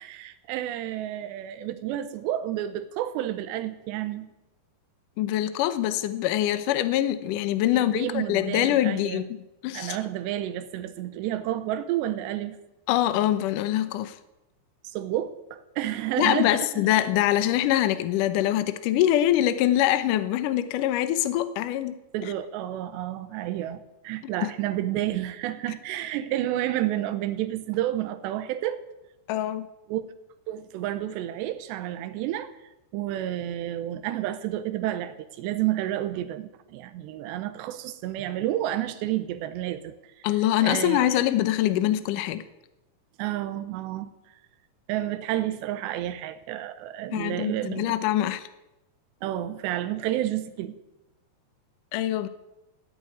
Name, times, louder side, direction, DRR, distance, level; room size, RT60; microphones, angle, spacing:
voice 1, 0.0-4.3 7.7-9.2 9.7-12.6 14.8-16.7 22.1-28.8 29.9-30.1 30.5-32.5 32.9-40.3 40.6-41.3 43.2-44.1 44.9-47.9 49.2-50.8, right 13 dB, 85° right, 11 dB, 3.1 m, -30 dB
voice 2, 5.2-9.3 9.6-10.0 12.9-14.2 16.2-22.3 24.4-24.5 29.3-29.7 40.2-42.4 47.1-48.5 51.9-52.3, left 13 dB, 75° left, 11 dB, 1.9 m, -24 dB
16.0 x 9.3 x 9.5 m, 0.96 s
omnidirectional pair, 4.8 m